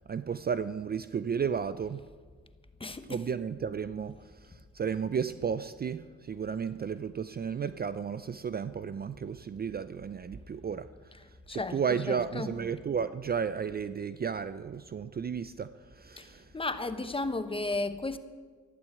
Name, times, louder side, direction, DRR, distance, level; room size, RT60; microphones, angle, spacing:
voice 1, 0.1-2.0 3.1-4.2 4.4-10.9 11.5-16.5, right 7 dB, 30° right, 0.5 m, -33 dB
voice 2, 2.8-3.2 11.5-12.5 16.2-18.2, left 2 dB, 20° left, 1.1 m, -34 dB
12.5 x 12.0 x 7.9 m
cardioid pair, 90°, 30 cm